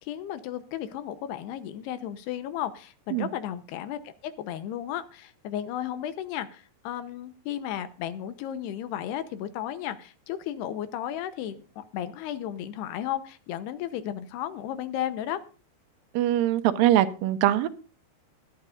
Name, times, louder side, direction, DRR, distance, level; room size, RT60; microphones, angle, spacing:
voice 1, 0.0-15.4, left 11 dB, 85° left, 11 dB, 3.0 m, -34 dB
voice 2, 16.1-17.7, right 12 dB, 75° right, 11 dB, 2.3 m, -22 dB
20.5 x 10.0 x 2.6 m, 0.36 s
omnidirectional pair, 4.7 m